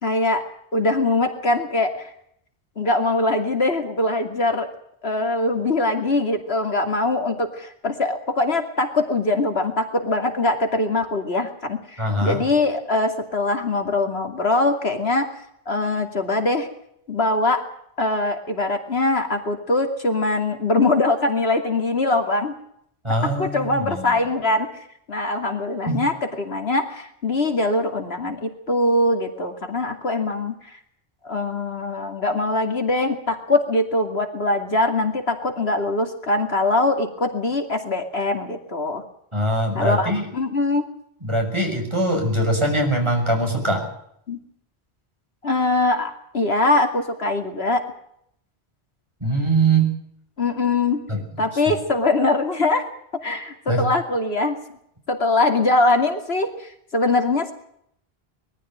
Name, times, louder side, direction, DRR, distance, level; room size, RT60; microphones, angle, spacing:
voice 1, 0.0-0.4 0.7-2.1 2.8-4.7 5.0-15.3 15.7-16.7 17.1-17.6 18.0-22.5 23.2-24.7 25.1-30.8 31.2-39.0 39.7-40.8 44.3-44.4 45.4-47.8 50.4-51.0 51.4-52.9 53.2-54.6 55.1-57.5, left 2 dB, 70° left, 5 dB, 2.8 m, -22 dB
voice 2, 12.0-12.4 23.0-24.1 25.9-26.0 39.3-40.3 41.2-43.9 49.2-49.9 51.1-51.2 53.7-53.8, right 2 dB, 25° right, 1 dB, 6.6 m, -22 dB
22.0 x 14.5 x 9.3 m, 0.72 s
omnidirectional pair, 1.1 m